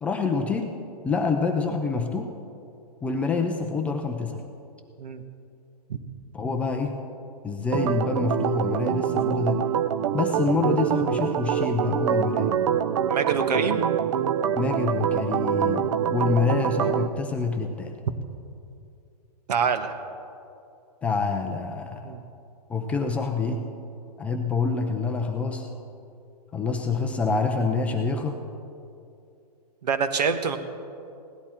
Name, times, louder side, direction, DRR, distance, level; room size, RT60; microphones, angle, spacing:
voice 1, 0.0-0.7 1.0-2.3 3.0-4.4 6.3-6.9 7.4-9.6 10.1-12.5 14.6-15.8 16.1-18.0 21.0-22.1 22.7-23.6 24.2-25.7 26.5-28.4, left 4 dB, 5° left, 3 dB, 0.4 m, -26 dB
Organ, 7.7-17.1, right 9 dB, 50° right, 0.5 m, -25 dB
voice 2, 13.1-13.8 19.5-20.0 22.0-22.2 29.8-30.6, right 6 dB, 80° right, 8 dB, 1.2 m, -25 dB
17.0 x 11.0 x 4.4 m, 2.5 s
hypercardioid pair, 160°, 21 cm